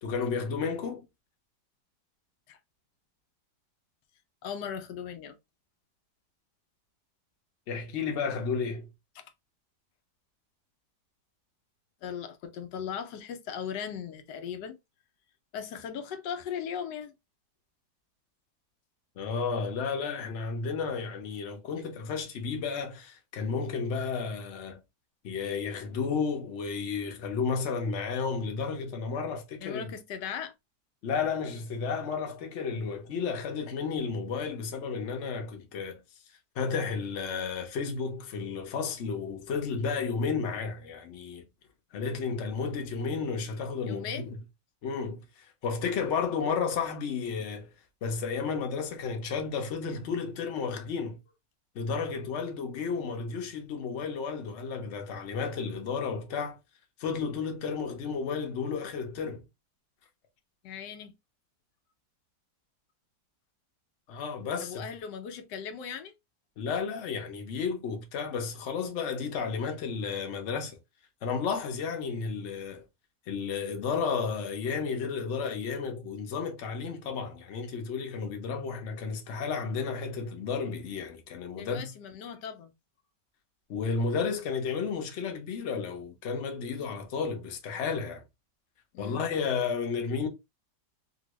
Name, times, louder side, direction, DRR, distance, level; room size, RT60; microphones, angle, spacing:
voice 1, 0.0-1.1 7.7-8.9 19.2-24.8 25.2-29.9 31.0-36.0 36.6-41.5 41.9-44.4 44.8-47.7 48.0-51.2 51.7-56.6 57.0-59.4 64.1-64.9 66.6-70.8 71.2-72.8 73.3-81.9 83.7-88.2 89.0-90.3, left 5 dB, 55° left, 0.9 m, -32 dB
voice 2, 4.4-5.4 9.2-9.3 12.0-14.8 15.5-17.1 29.6-30.5 43.9-44.3 60.6-61.1 64.6-66.1 81.5-82.7 88.9-89.2, left 7 dB, 85° left, 1.2 m, -38 dB
2.9 x 2.6 x 3.0 m
omnidirectional pair, 1.8 m